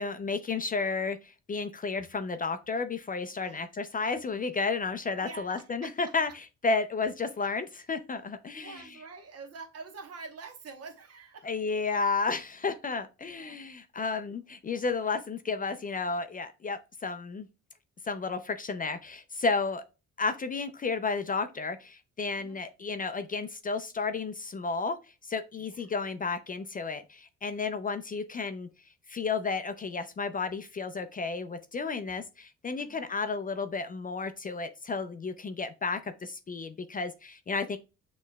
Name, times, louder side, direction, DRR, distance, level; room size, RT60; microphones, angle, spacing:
voice 1, 0.0-8.9 11.4-17.5 18.0-19.8 20.2-25.0 25.2-28.7 29.1-37.8, left 4 dB, 30° left, 0.4 m, -32 dB
voice 2, 5.2-5.9 8.5-11.5 13.2-13.6 22.4-22.6 25.6-25.8 32.8-33.1, right 4 dB, 55° right, 1.1 m, -46 dB
6.3 x 3.1 x 2.2 m
cardioid pair, 90°, 30 cm